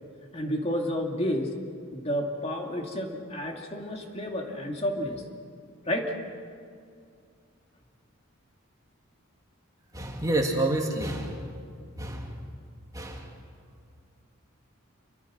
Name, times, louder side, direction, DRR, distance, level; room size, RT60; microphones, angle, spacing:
voice 1, 0.3-1.5 1.9-5.2 5.9-6.1, equal, 30° left, 1 dB, 2.5 m, -30 dB
voice 2, 9.9-11.4 12.0-12.3 12.9-13.3, right 1 dB, 15° right, 1 dB, 2.6 m, -29 dB
28.5 x 25.0 x 6.4 m, 2.2 s
head